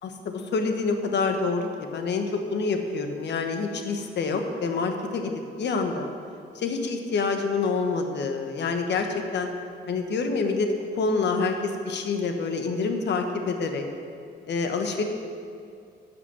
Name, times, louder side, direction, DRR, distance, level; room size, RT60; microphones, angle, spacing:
voice 1, 0.0-6.1 6.5-9.5 9.9-10.7 11.0-13.9 14.5-15.0, left 4 dB, 60° left, 5 dB, 1.2 m, -27 dB
11.0 x 6.0 x 6.1 m, 2.4 s
cardioid pair, 90°, 20 cm